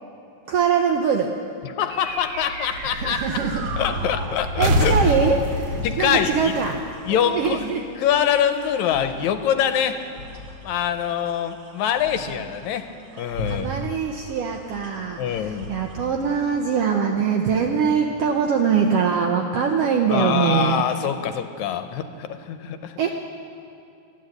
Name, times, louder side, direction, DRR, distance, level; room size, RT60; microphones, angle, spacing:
voice 1, 0.5-1.3 3.0-3.7 4.6-6.8 7.1-7.8 13.2-20.8 23.0-23.1, right 6 dB, 75° right, 3 dB, 1.4 m, -23 dB
voice 2, 1.6-3.3 3.8-5.1 5.8-6.5 7.1-7.7 8.0-10.0 10.6-12.9 13.2-13.8 15.2-15.7 20.1-23.0, left 9 dB, 80° left, 9 dB, 1.9 m, -24 dB
sound 1, 1.9-7.6, equal, 60° right, 1.9 m, -26 dB
sound 2, 2.6-16.0, left 1 dB, 35° right, 1.9 m, -39 dB
13.5 x 10.0 x 7.9 m, 2.6 s
omnidirectional pair, 3.5 m